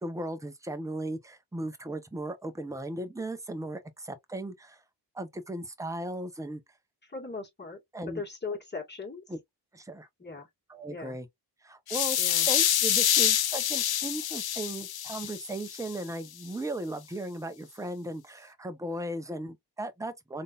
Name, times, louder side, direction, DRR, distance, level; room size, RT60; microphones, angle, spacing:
voice 1, 0.0-4.8 5.1-6.6 7.9-8.2 9.3-9.4 9.7-10.1 10.7-11.3 11.6-12.2 12.5-20.4, right 1 dB, 10° right, 0.6 m, -37 dB
voice 2, 7.0-7.8 8.1-9.2 10.2-10.5 10.9-11.2 12.2-12.5, left 4 dB, 25° left, 1.8 m, -39 dB
sound 1, 11.9-16.0, left 11 dB, 60° left, 0.6 m, -27 dB
3.7 x 2.6 x 2.4 m
cardioid pair, 85°, 43 cm